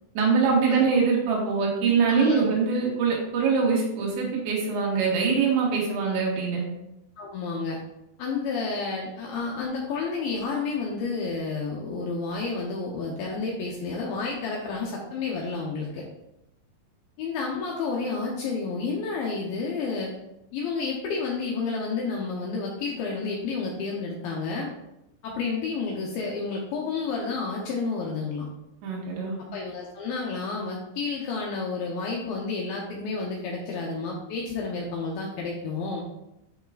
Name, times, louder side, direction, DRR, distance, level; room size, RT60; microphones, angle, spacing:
voice 1, 0.2-6.6 28.8-29.4, right 5 dB, 75° right, -3 dB, 3.8 m, -23 dB
voice 2, 2.1-2.5 7.2-7.8 8.2-16.0 17.2-20.1 20.5-24.7 25.2-28.5 29.5-36.0, left 4 dB, 90° left, -2 dB, 2.1 m, -30 dB
12.0 x 4.8 x 2.4 m, 0.87 s
omnidirectional pair, 5.4 m